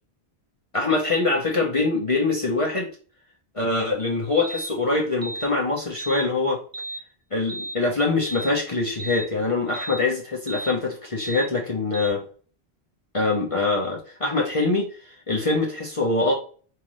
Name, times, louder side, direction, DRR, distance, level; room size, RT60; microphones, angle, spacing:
voice 1, 0.7-2.9 3.5-6.6 7.3-12.2 13.1-16.3, left 3 dB, 35° left, -2 dB, 1.0 m, -24 dB
sound 1, 4.4-4.7 5.2-5.5 6.0-6.3 6.7-7.0 7.5-7.8 8.2-8.5 9.0-9.3 9.7-10.0 10.5-10.8 11.2-11.5 11.9-12.1, right 2 dB, 35° right, 0.4 m, -34 dB
5.3 x 2.9 x 3.0 m, 0.40 s
omnidirectional pair, 1.1 m